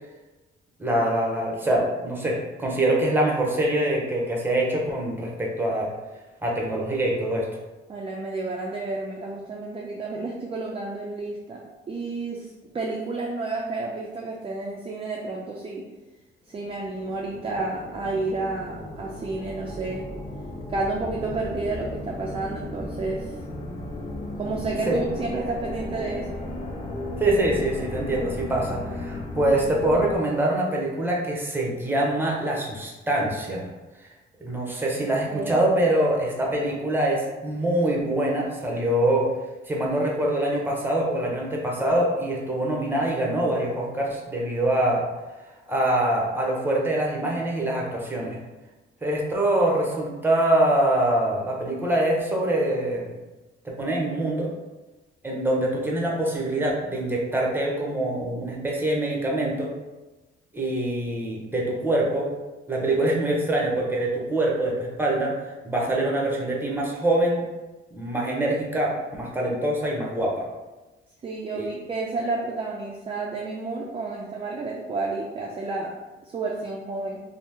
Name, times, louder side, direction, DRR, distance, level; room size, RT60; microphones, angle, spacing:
voice 1, 0.8-5.9 6.4-7.5 24.9-25.0 27.2-33.7 34.0-34.1 34.4-39.3 39.7-45.0 45.7-48.4 49.0-53.1 53.6-54.5 55.2-59.7 60.5-62.4 62.7-67.4 67.9-70.5 71.5-71.7, right 1 dB, 10° right, -2 dB, 0.8 m, -24 dB
voice 2, 7.9-11.6 11.9-15.8 16.5-20.0 20.7-23.3 24.4-26.4 35.3-35.6 71.2-75.9 76.3-77.2, right 3 dB, 30° right, -2 dB, 0.4 m, -31 dB
sound 1, 16.6-30.2, left 1 dB, 30° left, 0.6 m, -35 dB
2.8 x 2.0 x 3.4 m, 1.1 s
cardioid pair, 90°, 20 cm